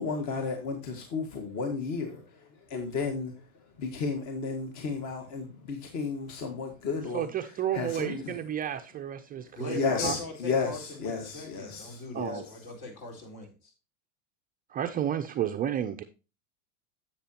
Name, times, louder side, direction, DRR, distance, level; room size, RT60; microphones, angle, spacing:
voice 1, 0.0-2.2 2.7-3.3 3.8-7.3 7.7-8.4 9.7-12.4, left 4 dB, 40° left, 1.7 m, -32 dB
voice 2, 7.1-10.1 12.1-12.4 14.7-16.0, right 10 dB, 20° right, 0.4 m, -32 dB
voice 3, 9.5-13.7, left 2 dB, 60° left, 4.3 m, -41 dB
10.0 x 7.9 x 2.9 m
supercardioid pair, 130°, 43 cm